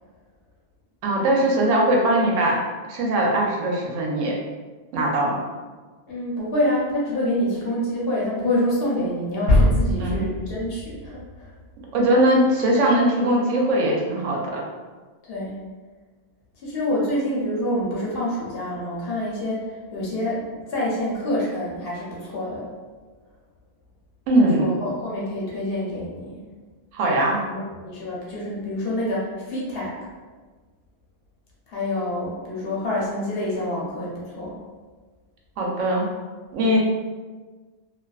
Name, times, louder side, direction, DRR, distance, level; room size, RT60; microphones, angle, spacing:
voice 1, 1.0-2.6 2.9-4.3 4.9-5.4 10.0-10.3 11.9-14.6 24.3-24.7 26.9-27.4 35.6-36.1 36.5-36.8, right 1 dB, 85° right, -1 dB, 0.9 m, -20 dB
voice 2, 6.1-11.5 15.3-15.6 16.6-22.7 24.5-26.4 27.4-29.9 31.7-34.5, left 1 dB, 60° left, -5 dB, 0.8 m, -27 dB
sound 1, 9.5-12.2, left 1 dB, 65° right, 1.3 m, -22 dB
2.4 x 2.2 x 2.3 m, 1.4 s
omnidirectional pair, 1.2 m